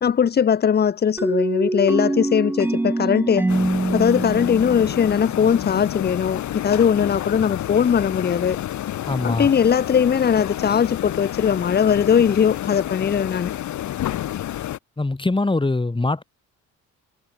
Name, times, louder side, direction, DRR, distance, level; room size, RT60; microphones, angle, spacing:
voice 1, 0.0-3.5 3.9-8.6 9.2-13.5, left 7 dB, 35° left, 0.7 m, -20 dB
sound 1, 1.2-5.9, right 2 dB, 5° right, 0.4 m, -24 dB
sound 2, 3.5-14.8, left 12 dB, 70° left, 1.8 m, -29 dB
voice 2, 9.1-9.5 15.0-16.2, left 2 dB, 15° left, 5.1 m, -22 dB
cardioid pair, 90°, 30 cm